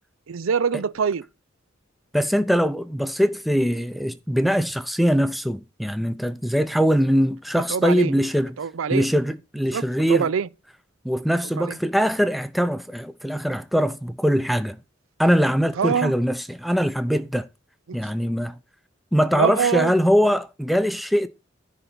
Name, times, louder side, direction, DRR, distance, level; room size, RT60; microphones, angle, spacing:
voice 1, 0.3-1.2 7.7-8.1 8.6-9.1 9.7-10.5 11.6-11.8 15.8-16.1 19.3-19.9, right 6 dB, 80° right, 0.5 m, -24 dB
voice 2, 2.1-8.5 8.9-10.3 11.0-14.8 15.2-17.4 17.9-18.6 19.1-21.3, equal, ahead, 0.5 m, -22 dB
10.0 x 4.1 x 6.8 m
head